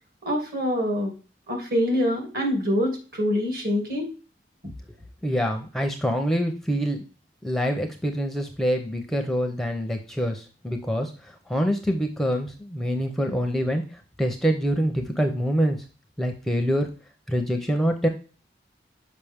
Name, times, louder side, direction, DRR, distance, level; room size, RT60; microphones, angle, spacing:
voice 1, 0.2-1.1 1.5-4.1, equal, 55° right, 2 dB, 2.6 m, -25 dB
voice 2, 5.2-7.0 7.4-13.8 14.2-15.8 16.2-16.9 17.3-18.1, equal, ahead, 4 dB, 0.6 m, -25 dB
6.7 x 5.2 x 3.5 m, 0.36 s
head